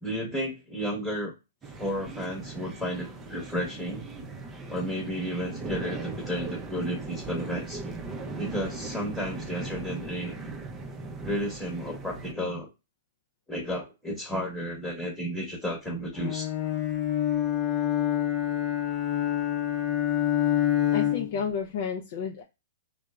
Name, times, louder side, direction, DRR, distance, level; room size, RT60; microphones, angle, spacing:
voice 1, 0.0-1.3 1.8-4.0 4.7-7.8 8.4-10.3 11.2-12.7 13.5-16.5, equal, 5° left, -3 dB, 1.0 m, -32 dB
sound 1, 1.6-12.3, right 3 dB, 20° right, 0.5 m, -39 dB
Bowed string instrument, 16.2-21.5, left 11 dB, 30° left, 0.7 m, -27 dB
voice 2, 20.9-22.4, left 6 dB, 50° left, 2 dB, 0.4 m, -31 dB
2.8 x 2.0 x 2.3 m, 0.27 s
hypercardioid pair, 130°, 0 cm